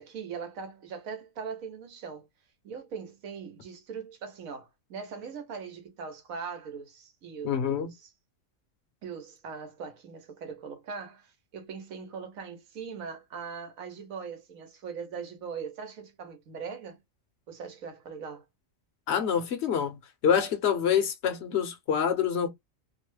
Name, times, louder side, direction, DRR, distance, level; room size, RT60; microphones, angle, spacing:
voice 1, 0.0-2.3 2.6-8.1 9.0-17.0 17.5-18.4, right 6 dB, 90° right, 1.3 m, -40 dB
voice 2, 7.4-7.9 19.1-22.5, left 8 dB, 60° left, 0.9 m, -26 dB
3.0 x 2.1 x 3.0 m
omnidirectional pair, 1.4 m